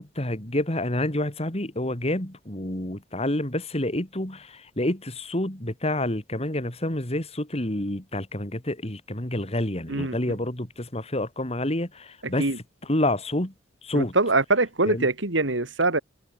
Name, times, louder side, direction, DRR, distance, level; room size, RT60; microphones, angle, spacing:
voice 1, 0.0-4.5 4.8-12.5 12.8-13.5 13.8-14.1 14.9-15.1, left 1 dB, 35° left, 3.5 m, -28 dB
voice 2, 13.9-16.0, right 2 dB, 85° right, 3.0 m, -23 dB
head